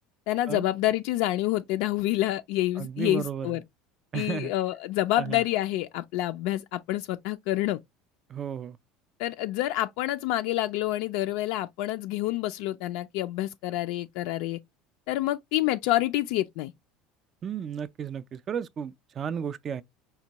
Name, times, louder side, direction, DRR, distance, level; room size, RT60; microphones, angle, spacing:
voice 1, 0.3-3.6 4.1-7.8 9.2-14.6 15.1-16.7, left 15 dB, 70° left, 0.3 m, -28 dB
voice 2, 2.8-3.6 4.1-4.5 5.2-5.4 8.3-8.8 17.4-19.8, right 8 dB, 30° right, 0.3 m, -33 dB
5.3 x 2.2 x 2.8 m
cardioid pair, 140°, 0 cm